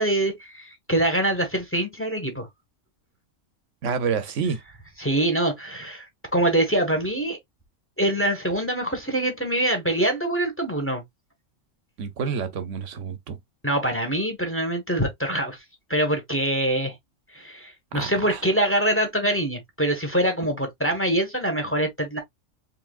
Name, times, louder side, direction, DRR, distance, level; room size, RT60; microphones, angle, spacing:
voice 1, 0.0-2.5 5.0-6.1 6.3-7.4 8.0-11.0 13.6-15.6 15.9-16.9 17.3-22.2, right 1 dB, 10° left, 1.3 m, -24 dB
voice 2, 3.8-4.6 12.0-13.4 17.9-18.4, right 6 dB, 75° right, 1.1 m, -28 dB
4.7 x 3.4 x 2.4 m
omnidirectional pair, 1.3 m